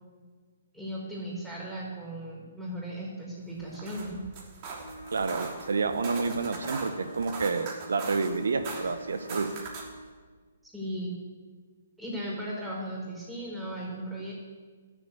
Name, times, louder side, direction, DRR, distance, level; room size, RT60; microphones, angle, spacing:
voice 1, 0.7-4.2 10.6-11.1 12.0-14.3, right 1 dB, 5° right, -5 dB, 5.0 m, -37 dB
sound 1, 3.6-10.0, right 4 dB, 35° right, 3.2 m, -40 dB
sound 2, 4.7-10.2, right 1 dB, 90° left, 2.7 m, -46 dB
voice 2, 5.1-9.5, right 4 dB, 75° right, 9 dB, 0.9 m, -29 dB
12.5 x 7.3 x 8.3 m, 1.5 s
hypercardioid pair, 140°, 0 cm